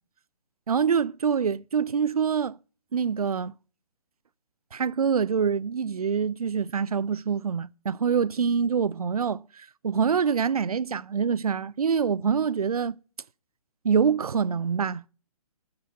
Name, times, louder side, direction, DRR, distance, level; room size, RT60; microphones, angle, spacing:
voice 1, 0.7-2.6 2.9-3.5 4.7-13.0 13.8-15.1, right 6 dB, 75° right, 0.4 m, -25 dB
9.4 x 6.2 x 6.3 m
figure-of-eight pair, 135°, 19 cm